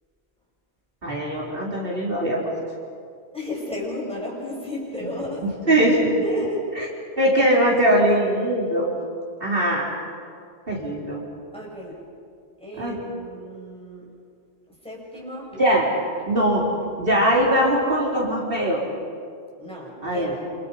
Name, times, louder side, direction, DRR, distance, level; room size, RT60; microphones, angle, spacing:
voice 1, 1.0-2.4 5.7-6.2 7.2-8.9 9.4-9.9 10.7-11.2 12.8-13.0 15.5-15.9 16.3-16.7 17.0-18.8 20.0-20.3, equal, 60° right, -4 dB, 4.2 m, -21 dB
voice 2, 3.3-5.4 6.2-6.7 11.5-12.0 12.6-14.1 14.7-15.6 19.6-20.5, left 1 dB, 5° left, -4 dB, 7.8 m, -33 dB
29.5 x 27.5 x 5.7 m, 2.3 s
omnidirectional pair, 1.1 m